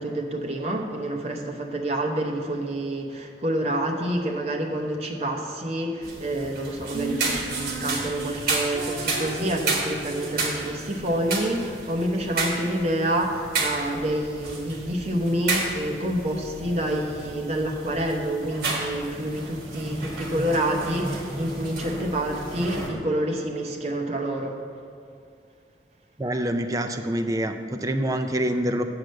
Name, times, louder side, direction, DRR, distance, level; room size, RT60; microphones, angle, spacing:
voice 1, 0.0-24.6, right 1 dB, 35° right, 1 dB, 0.8 m, -28 dB
sound 1, 6.0-22.9, right 3 dB, 55° right, 1.4 m, -32 dB
Female singing, 6.9-10.4, right 1 dB, 80° right, 0.9 m, -35 dB
voice 2, 26.2-28.8, right 1 dB, 20° right, 6 dB, 0.4 m, -26 dB
7.8 x 4.9 x 6.5 m, 2.4 s
head